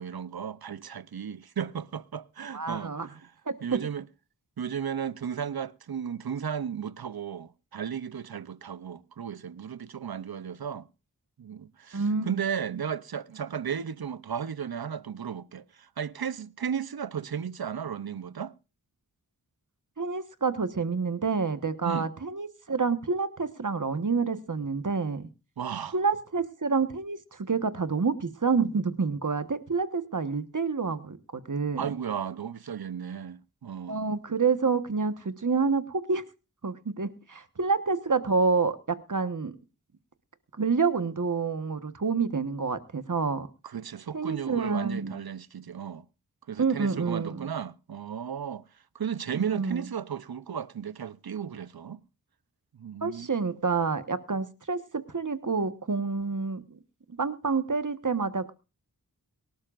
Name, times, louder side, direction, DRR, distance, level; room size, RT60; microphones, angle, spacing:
voice 1, 0.0-3.3 3.6-4.1 4.6-10.9 11.4-18.5 21.8-22.1 25.6-26.0 31.8-34.1 43.6-46.1 46.5-48.6 48.9-52.0 52.7-53.3, right 7 dB, 85° right, 0.7 m, -35 dB
voice 2, 2.5-3.1 3.5-3.8 11.9-12.3 20.0-25.3 25.9-31.9 33.9-36.2 36.6-39.5 40.6-43.5 44.1-45.2 46.6-47.5 49.3-49.8 53.0-56.8 57.2-58.5, right 4 dB, 55° right, 1.3 m, -28 dB
23.5 x 12.0 x 2.5 m
wide cardioid pair, 65°, 36 cm